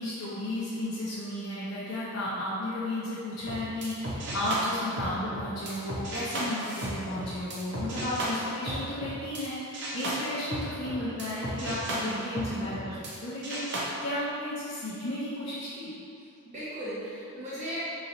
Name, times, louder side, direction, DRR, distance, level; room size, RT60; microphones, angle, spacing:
voice 1, 0.0-13.0 13.2-15.9, left 1 dB, 75° left, -11 dB, 0.7 m, -33 dB
sound 1, 3.4-9.5 9.7-13.2 13.4-13.8, right 1 dB, 60° right, 0.6 m, -35 dB
voice 2, 11.9-12.7 16.5-17.8, equal, 35° right, -10 dB, 1.1 m, -37 dB
4.0 x 3.1 x 2.6 m, 2.6 s
head